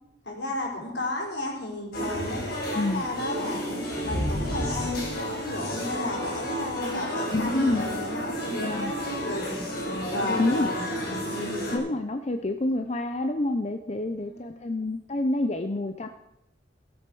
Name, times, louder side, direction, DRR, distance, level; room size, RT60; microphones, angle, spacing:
voice 1, 0.3-3.6 4.0-5.1 5.4-9.6 10.1-10.9 14.2-14.7, left 2 dB, 75° left, -2 dB, 4.4 m, -33 dB
sound 1, 1.9-11.8, equal, 55° left, 4.9 m, -31 dB
voice 2, 2.7-3.1 7.3-7.8 8.5-8.9 10.4-10.7 11.7-16.1, left 2 dB, 35° left, 6 dB, 0.6 m, -28 dB
16.5 x 7.8 x 6.1 m, 0.83 s
head